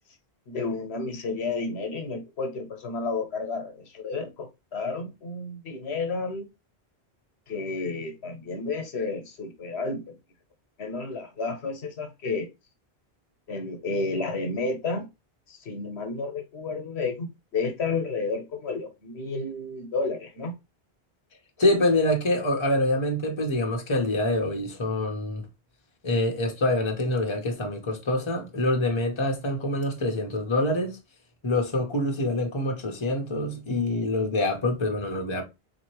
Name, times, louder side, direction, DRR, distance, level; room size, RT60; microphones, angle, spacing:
voice 1, 0.5-6.5 7.5-10.2 10.8-12.5 13.5-15.1 15.5-20.5, left 3 dB, 80° left, 1.3 m, -31 dB
voice 2, 21.6-25.4 26.0-31.0 31.4-35.4, left 1 dB, 30° left, 0.9 m, -25 dB
4.1 x 2.8 x 3.0 m
omnidirectional pair, 1.1 m